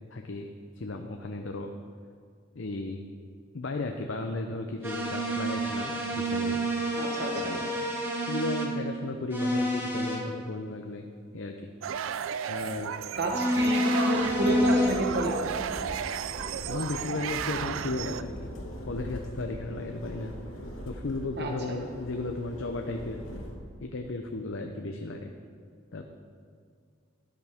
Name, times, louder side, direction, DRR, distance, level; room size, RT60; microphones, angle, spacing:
voice 1, 0.1-0.5 0.8-1.7 2.5-3.0 3.5-6.6 7.4-7.6 8.3-11.1 11.3-11.7 12.5-12.9 16.6-18.5 18.9-20.3 20.9-23.3 23.8-25.3 25.9-26.1, left 2 dB, 70° left, 4 dB, 0.7 m, -35 dB
sound 1, 4.8-8.7 9.3-10.2 13.3-14.9, equal, 10° right, 1.7 m, -28 dB
voice 2, 7.0-7.6 13.2-15.4 21.4-21.5, right 2 dB, 55° right, 1 dB, 1.3 m, -30 dB
sound 2, 11.8-18.2, right 8 dB, 85° right, 0.4 m, -34 dB
sound 3, 14.2-23.6, equal, 85° left, 2.2 m, -42 dB
12.5 x 10.5 x 3.6 m, 2.2 s
head